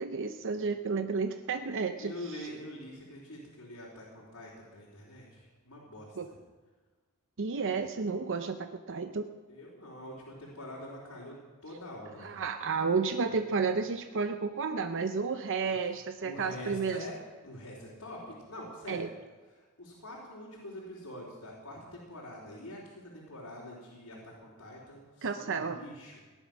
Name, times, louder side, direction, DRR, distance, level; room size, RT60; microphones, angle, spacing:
voice 1, 0.0-2.5 6.2-6.3 7.4-9.2 12.2-17.1 18.9-19.1 25.2-25.8, right 5 dB, 60° right, 7 dB, 0.6 m, -32 dB
voice 2, 2.0-6.4 9.5-12.4 15.6-15.9 16.2-17.1 17.4-19.0 19.8-26.1, left 1 dB, 80° left, -7 dB, 3.9 m, -45 dB
17.5 x 11.0 x 6.1 m, 1.4 s
head